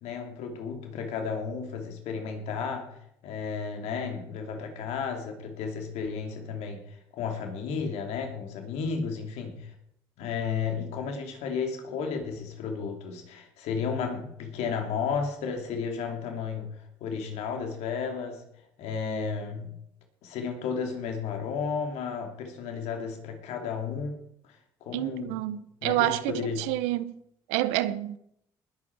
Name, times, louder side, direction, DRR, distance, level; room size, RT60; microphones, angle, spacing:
voice 1, 0.0-9.7 10.2-18.4 18.8-19.7 20.2-25.4 25.8-26.7, left 6 dB, 80° left, 2.8 m, -33 dB
voice 2, 24.9-27.2 27.5-28.2, right 15 dB, 90° right, 0.7 m, -28 dB
20.0 x 8.5 x 4.7 m
supercardioid pair, 65°, 11 cm